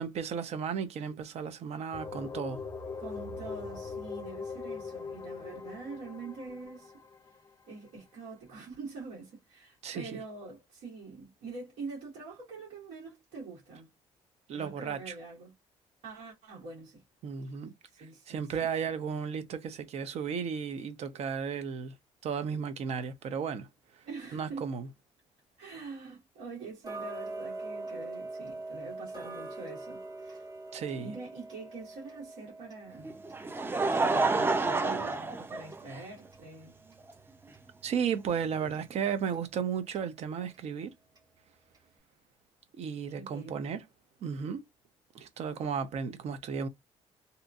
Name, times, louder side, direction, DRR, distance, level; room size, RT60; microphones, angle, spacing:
voice 1, 0.0-2.6 9.8-10.2 14.5-15.1 17.2-17.7 18.3-21.9 22.2-23.7 24.3-24.9 30.7-31.1 37.8-40.9 42.8-43.8 44.2-44.6 45.1-46.7, right 7 dB, 65° right, 0.7 m, -34 dB
sound 1, 1.9-7.6, left 5 dB, 30° left, 0.5 m, -41 dB
voice 2, 3.0-6.9 7.7-13.9 14.5-15.5 16.0-17.0 17.4-17.5 18.0-18.7 24.0-24.7 25.6-30.4 31.0-33.2 33.8-36.7 43.1-43.7, right 3 dB, 90° right, 1.6 m, -45 dB
Tick-tock, 26.8-37.7 38.1-38.2 38.7-38.8 39.3-39.4 39.9-40.0 40.5-40.6 41.2-41.3 41.7-41.8, right 2 dB, 35° right, 1.5 m, -44 dB
Laughter, 33.0-36.3 37.1-37.2 38.6-38.7, right 3 dB, 20° right, 0.5 m, -29 dB
2.8 x 2.6 x 2.4 m
cardioid pair, 100°, 12 cm